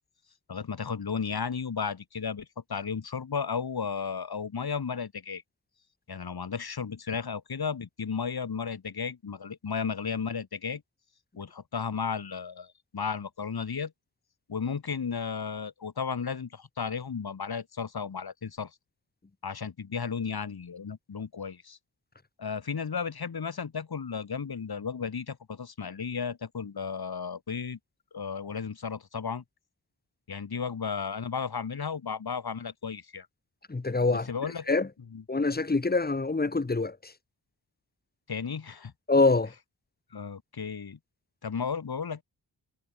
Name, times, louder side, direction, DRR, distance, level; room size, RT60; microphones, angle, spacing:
voice 1, 0.5-5.4 6.1-10.8 11.4-13.9 14.5-18.7 19.4-21.8 22.4-27.8 28.1-29.4 30.3-33.3 34.1-34.7 35.1-35.2 38.3-38.9 40.1-41.0 41.4-42.2, left 6 dB, 60° left, 2.4 m, -34 dB
voice 2, 33.7-34.3 34.7-34.9 35.3-37.1 39.1-39.5, left 3 dB, 20° left, 1.2 m, -25 dB
wide cardioid pair, 85°, 42 cm